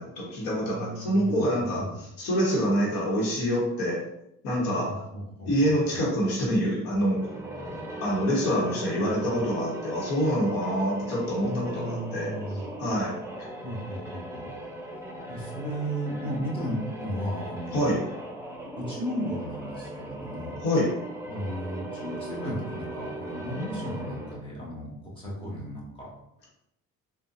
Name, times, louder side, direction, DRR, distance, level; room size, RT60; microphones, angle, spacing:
voice 1, 0.0-1.8 2.2-4.0 4.4-4.9 5.4-7.2 8.0-12.3 12.8-13.1 17.7-18.0 20.6-20.9, equal, 85° left, -3 dB, 1.1 m, -26 dB
voice 2, 0.6-1.4 1.7-1.9 4.5-6.0 8.7-9.1 11.4-12.7 13.6-14.5 15.3-17.9 18.8-20.6 21.3-26.1, equal, 15° left, -6 dB, 1.5 m, -35 dB
sound 1, 7.0-24.5, right 1 dB, 10° right, 0.7 m, -39 dB
3.8 x 2.3 x 2.5 m, 0.81 s
supercardioid pair, 80°, 34 cm